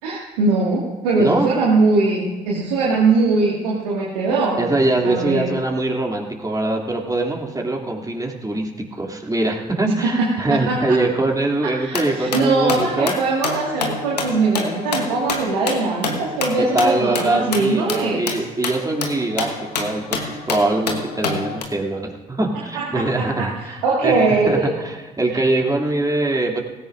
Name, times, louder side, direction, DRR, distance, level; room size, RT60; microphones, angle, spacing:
voice 1, 0.0-4.6 5.0-5.4 9.8-11.0 11.8-18.3 22.7-24.7 25.3-25.4, right 3 dB, 75° right, -4 dB, 2.1 m, -21 dB
voice 2, 4.6-13.1 16.6-19.5 19.8-26.6, right 2 dB, 20° right, 1 dB, 2.8 m, -22 dB
sound 1, 11.9-21.6, left 4 dB, 85° left, 1.2 m, -28 dB
18.5 x 16.5 x 2.6 m, 1.2 s
figure-of-eight pair, 45°, 20 cm